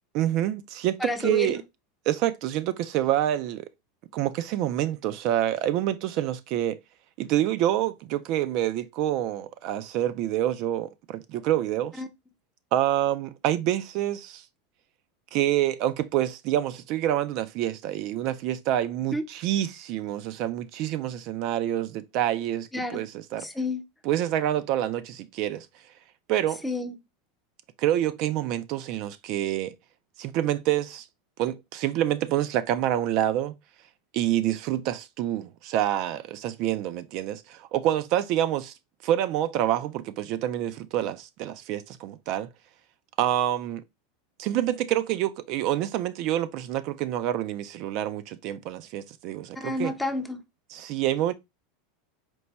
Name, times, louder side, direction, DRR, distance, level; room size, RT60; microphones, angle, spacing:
voice 1, 0.1-1.6 2.1-3.7 4.1-6.8 7.2-11.9 12.7-14.4 15.3-23.5 24.1-25.7 26.3-26.6 27.8-29.7 30.2-31.1 31.4-33.6 34.1-38.7 39.0-42.5 43.2-43.8 44.4-49.9 50.7-51.3, right 12 dB, 50° right, 0.3 m, -27 dB
voice 2, 1.0-1.6 12.0-12.1 19.1-19.3 22.7-23.0 23.4-23.8 26.6-27.0 49.6-50.4, left 2 dB, 5° left, 0.5 m, -30 dB
4.5 x 2.1 x 4.0 m
supercardioid pair, 145°, 0 cm